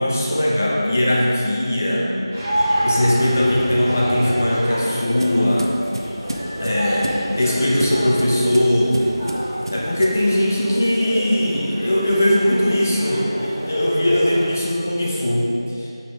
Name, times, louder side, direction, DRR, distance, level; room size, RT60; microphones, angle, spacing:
voice 1, 0.0-2.1 2.8-5.7 6.6-7.1 7.4-8.9 9.7-15.5 15.7-15.9, left 1 dB, 30° left, -4 dB, 1.2 m, -19 dB
sound 1, 2.3-14.5, equal, 20° right, 1.9 m, -28 dB
sound 2, 4.2-10.3, right 1 dB, 55° right, 0.9 m, -32 dB
8.8 x 5.6 x 4.8 m, 2.9 s
figure-of-eight pair, 175°, 3 cm